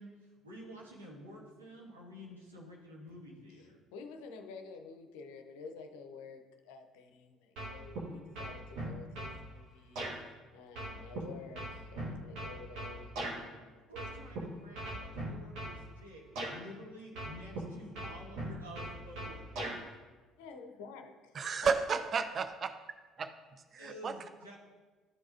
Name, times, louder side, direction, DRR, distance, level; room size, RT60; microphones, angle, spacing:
voice 1, 0.0-3.8 13.9-19.8 23.8-24.6, equal, 85° right, -4 dB, 1.3 m, -50 dB
voice 2, 3.9-10.1 10.5-13.1 13.4-14.1 20.4-21.7, left 5 dB, 70° left, 6 dB, 0.6 m, -50 dB
sound 1, 7.6-8.1 8.3-9.4 10.0-10.1 10.8-13.4 13.9-14.4 14.7-15.8 16.4-16.5 17.2-17.6 17.9-19.8, right 1 dB, 65° right, 1.5 m, -39 dB
voice 3, 21.4-22.7 23.2-23.3 23.7-24.1, right 5 dB, 40° right, 9 dB, 0.4 m, -32 dB
11.5 x 4.7 x 2.6 m, 1.3 s
figure-of-eight pair, 55°, 0 cm